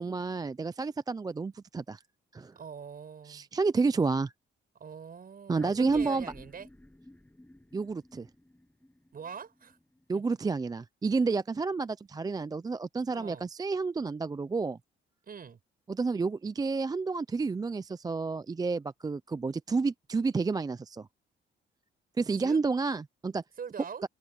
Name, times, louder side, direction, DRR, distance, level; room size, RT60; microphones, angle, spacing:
voice 1, 0.0-2.0 2.3-2.5 3.3-4.3 5.5-6.3 7.7-8.3 10.1-14.8 15.9-21.1 22.2-23.4, right 4 dB, 20° right, 0.4 m, -30 dB
voice 2, 2.5-3.5 4.8-6.7 9.1-9.8 10.1-10.2 13.1-13.5 15.3-15.6 22.4-22.6 23.6-24.0, right 6 dB, 45° right, 6.4 m, -43 dB
sound 1, 5.6-10.5, left 1 dB, 10° left, 2.1 m, -51 dB
cardioid pair, 90°, 20 cm